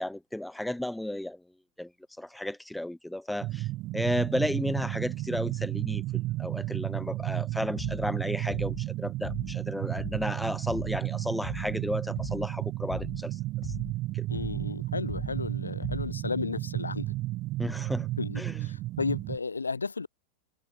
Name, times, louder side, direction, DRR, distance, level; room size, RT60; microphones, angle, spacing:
voice 1, 0.0-1.4 1.8-1.9 2.2-3.7 3.9-13.4 14.1-14.3 17.6-18.1 18.4-18.6, left 1 dB, 5° left, 0.7 m, -33 dB
sound 1, 3.4-19.4, right 17 dB, 35° right, 1.3 m, -33 dB
sound 2, 7.8-8.1 8.5-8.9 9.2-9.6 10.0-10.3 10.7-11.1 11.4-11.8 12.2-12.5 12.9-13.3 13.6-14.0 14.4-14.7 15.1-15.5 15.8-16.2, left 14 dB, 35° left, 5.3 m, -41 dB
voice 2, 14.3-17.2 18.2-20.1, left 4 dB, 75° left, 0.5 m, -34 dB
figure-of-eight pair, 90°, 0 cm